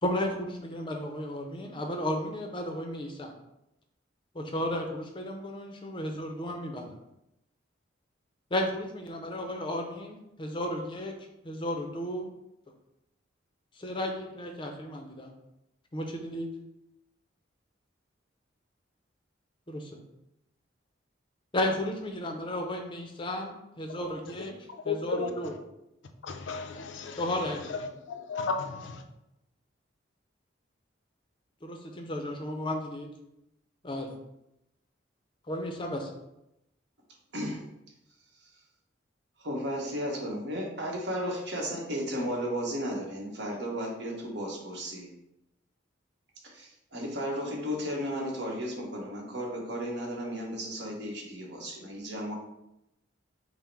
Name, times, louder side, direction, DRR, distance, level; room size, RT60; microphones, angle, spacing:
voice 1, 0.0-3.3 4.3-7.0 8.5-11.2 11.4-12.3 13.7-15.3 15.9-16.5 19.7-20.0 21.5-24.6 24.8-25.6 27.2-27.9 31.6-33.1 33.8-34.2 35.5-36.1, left 1 dB, 25° left, 3 dB, 0.5 m, -33 dB
voice 2, 24.9-25.3 26.3-27.2 28.1-29.0, left 5 dB, 80° left, 6 dB, 0.5 m, -33 dB
voice 3, 39.4-45.1 46.4-52.3, equal, 60° right, -2 dB, 1.2 m, -34 dB
5.5 x 2.1 x 4.6 m, 0.86 s
head